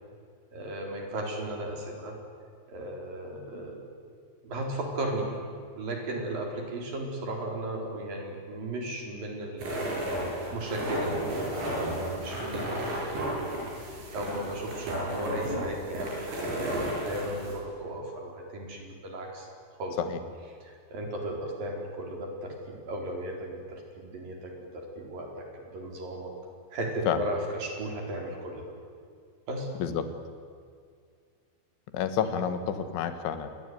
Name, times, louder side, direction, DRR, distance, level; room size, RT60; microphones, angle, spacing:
voice 1, 0.5-2.2 2.7-3.8 4.4-5.4 5.8-9.9 10.2-19.5 19.8-20.0 20.6-25.5 25.7-26.3 26.7-28.7 29.5-29.7, right 1 dB, 50° right, 2 dB, 5.6 m, -36 dB
sound 1, 9.6-17.5, right 1 dB, 75° right, 10.0 m, -33 dB
voice 2, 31.9-33.5, left 8 dB, 85° left, 10 dB, 4.0 m, -29 dB
27.5 x 22.5 x 9.5 m, 2.2 s
omnidirectional pair, 5.3 m